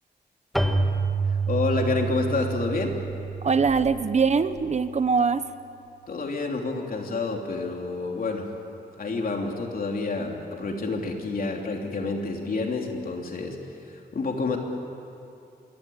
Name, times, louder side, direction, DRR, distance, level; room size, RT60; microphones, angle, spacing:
Keyboard (musical), 0.5-5.0, right 3 dB, ahead, 1.4 m, -28 dB
voice 1, 1.3-2.9 6.1-8.5 9.0-13.6 14.1-14.6, left 3 dB, 55° left, 1 dB, 3.3 m, -28 dB
voice 2, 3.4-5.4, right 5 dB, 40° right, 12 dB, 0.7 m, -22 dB
26.0 x 22.5 x 8.8 m, 2.7 s
wide cardioid pair, 165°, 18 cm